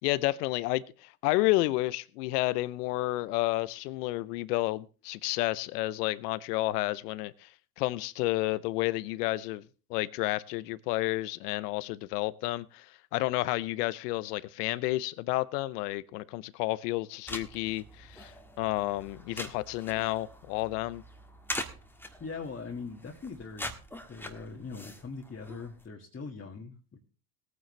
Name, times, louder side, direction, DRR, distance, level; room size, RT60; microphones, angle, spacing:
voice 1, 0.0-7.5 7.8-9.6 9.9-21.0, left 18 dB, 80° left, 19 dB, 0.8 m, -31 dB
sound 1, 17.3-25.8, left 1 dB, 5° left, 1.6 m, -43 dB
voice 2, 22.2-23.8 24.1-27.0, left 4 dB, 25° left, 0 dB, 1.9 m, -41 dB
19.0 x 9.4 x 3.2 m, 0.35 s
hypercardioid pair, 75°, 46 cm